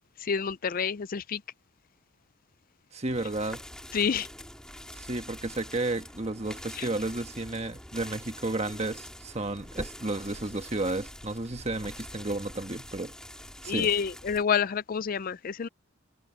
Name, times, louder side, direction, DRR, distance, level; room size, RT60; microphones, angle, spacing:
voice 1, 0.2-1.4 3.9-4.3 6.8-6.9 13.7-15.7, left 7 dB, 40° left, 0.4 m, -28 dB
voice 2, 2.9-3.6 4.9-13.1 13.6-13.9, right 2 dB, 30° right, 1.3 m, -32 dB
sound 1, 3.1-14.4, left 1 dB, 5° left, 2.1 m, -45 dB
head